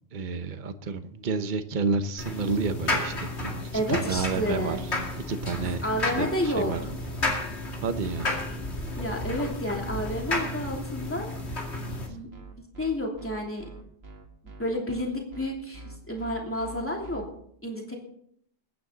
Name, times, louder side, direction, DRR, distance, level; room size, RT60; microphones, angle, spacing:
voice 1, 0.1-4.8 5.2-5.8 6.2-6.8 7.8-8.3, right 4 dB, 50° right, 10 dB, 1.0 m, -30 dB
sound 1, 2.2-12.1, left 2 dB, 80° left, 2.6 m, -32 dB
voice 2, 3.7-4.8 5.8-6.7 9.0-11.3 12.1-12.3 12.8-13.7 14.6-17.2 17.6-18.0, left 1 dB, 10° left, 0 dB, 2.9 m, -30 dB
sound 2, 3.7-17.2, right 3 dB, 70° right, 2.1 m, -46 dB
21.5 x 9.7 x 3.9 m, 0.67 s
omnidirectional pair, 1.1 m